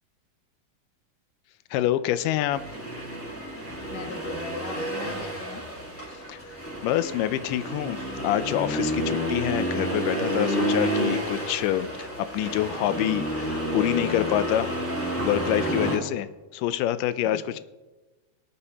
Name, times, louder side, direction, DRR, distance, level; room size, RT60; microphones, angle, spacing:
voice 1, 1.7-2.6 6.3-6.5 6.8-14.8 15.2-17.6, left 12 dB, 90° left, 14 dB, 2.2 m, -27 dB
Accelerating revving vroom, 2.5-16.0, equal, 15° left, 0.5 m, -30 dB
voice 2, 3.9-5.6 17.2-17.6, left 4 dB, 70° left, 5 dB, 1.0 m, -40 dB
19.0 x 8.4 x 2.9 m, 1.2 s
omnidirectional pair, 3.7 m